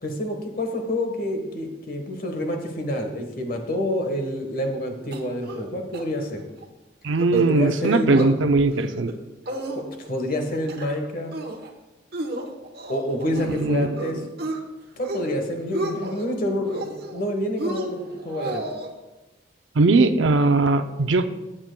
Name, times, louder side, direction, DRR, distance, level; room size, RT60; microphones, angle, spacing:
voice 1, 0.0-6.4 7.3-8.3 9.7-11.3 12.9-14.2 15.0-18.6, left 1 dB, 50° left, 4 dB, 1.3 m, -28 dB
sound 1, 5.1-5.7 5.9-6.0 6.4-6.7 7.1-7.5 7.8-8.3 8.7-9.1 9.5-10.1 10.5-11.0 11.3-11.7 12.1-13.6 14.0-14.6 15.0-15.3 15.6-16.2 16.7-17.2 17.6-18.9, right 2 dB, 55° right, 1.0 m, -32 dB
voice 2, 7.0-9.1 13.4-14.2 19.7-21.3, right 3 dB, 80° right, 9 dB, 0.6 m, -20 dB
14.5 x 8.9 x 2.2 m, 1.1 s
head